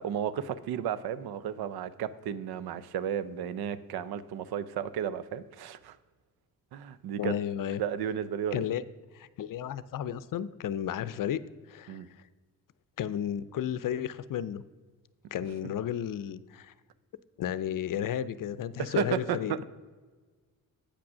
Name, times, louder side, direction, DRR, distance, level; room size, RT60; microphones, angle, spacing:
voice 1, 0.0-6.0 6.7-7.3 7.8-8.7 11.9-12.1 18.8-19.6, right 9 dB, 80° right, 15 dB, 0.6 m, -33 dB
voice 2, 7.2-7.8 8.5-8.8 9.1-11.4 11.7-12.0 13.0-14.6 15.3-16.7 17.4-19.6, left 10 dB, 60° left, 16 dB, 0.5 m, -33 dB
8.3 x 6.1 x 6.1 m, 1.4 s
cardioid pair, 75°, 37 cm